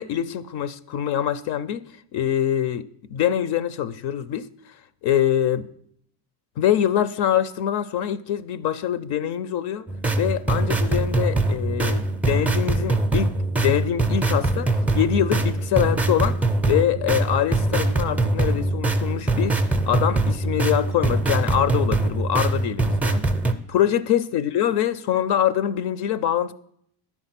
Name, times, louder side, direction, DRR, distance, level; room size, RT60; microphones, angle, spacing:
voice 1, 0.0-1.9 2.1-2.8 3.1-4.5 5.0-5.7 6.6-9.8 10.1-13.3 13.6-23.2 23.7-26.5, left 10 dB, 55° left, 0.5 m, -24 dB
sound 1, 9.9-23.5, right 2 dB, 5° right, 0.4 m, -23 dB
10.0 x 4.5 x 5.8 m
cardioid pair, 110°, 47 cm